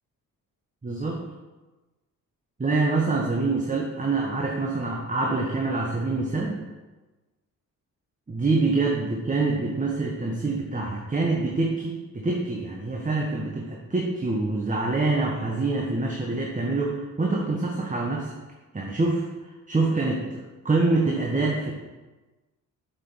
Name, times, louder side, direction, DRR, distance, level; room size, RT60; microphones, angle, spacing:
voice 1, 0.8-1.2 2.6-6.6 8.3-18.3 18.7-19.3 19.7-21.7, right 3 dB, 20° right, -1 dB, 1.3 m, -25 dB
7.6 x 5.7 x 5.7 m, 1.2 s
cardioid pair, 85°, 34 cm